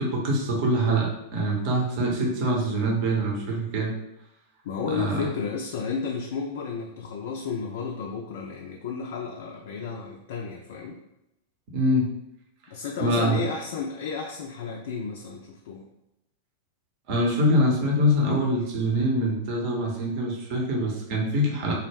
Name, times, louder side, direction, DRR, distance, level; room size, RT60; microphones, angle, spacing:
voice 1, 0.0-3.9 4.9-5.3 11.7-12.1 13.0-13.4 17.1-21.7, equal, 45° right, -1 dB, 0.7 m, -24 dB
voice 2, 4.6-11.0 12.7-15.8, left 5 dB, 60° left, 0 dB, 0.3 m, -32 dB
2.3 x 2.0 x 3.3 m, 0.87 s
figure-of-eight pair, 90°, 0 cm